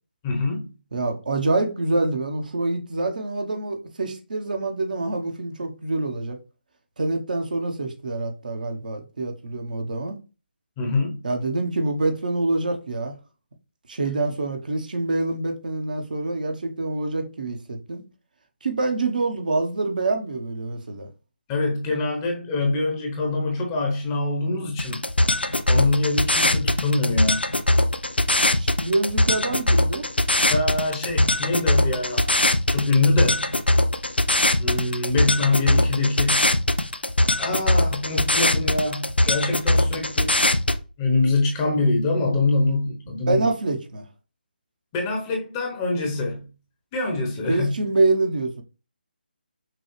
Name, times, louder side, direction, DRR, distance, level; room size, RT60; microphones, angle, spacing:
voice 1, 0.2-0.7 10.8-11.2 21.5-25.0 25.4-27.5 30.5-32.3 32.7-33.5 34.6-36.5 37.4-40.4 41.0-43.5 44.9-46.5 46.9-47.7, left 3 dB, 20° left, 0.9 m, -24 dB
voice 2, 0.9-6.4 7.0-10.2 11.2-13.1 13.9-18.0 18.6-21.1 28.6-30.1 43.3-44.0 47.4-48.6, right 2 dB, 55° right, 0.9 m, -26 dB
sound 1, 24.8-40.8, left 1 dB, 85° left, 0.5 m, -21 dB
5.9 x 2.3 x 3.1 m
figure-of-eight pair, 150°, 5 cm